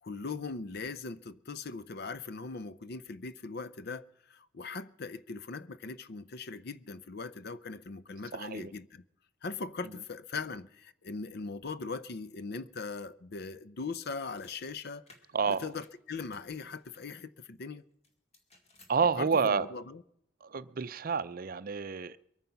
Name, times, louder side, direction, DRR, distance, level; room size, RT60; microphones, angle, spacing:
voice 1, 0.0-9.0 9.4-15.0 15.5-17.8 19.2-20.0, left 4 dB, 50° left, 0.6 m, -40 dB
voice 2, 8.3-8.7 15.3-15.6 18.9-19.7 20.4-22.2, right 5 dB, 45° right, 0.5 m, -29 dB
sound 1, 14.0-14.6 15.1-17.1 18.0-19.0, left 2 dB, 35° left, 2.2 m, -62 dB
22.5 x 9.4 x 5.7 m
head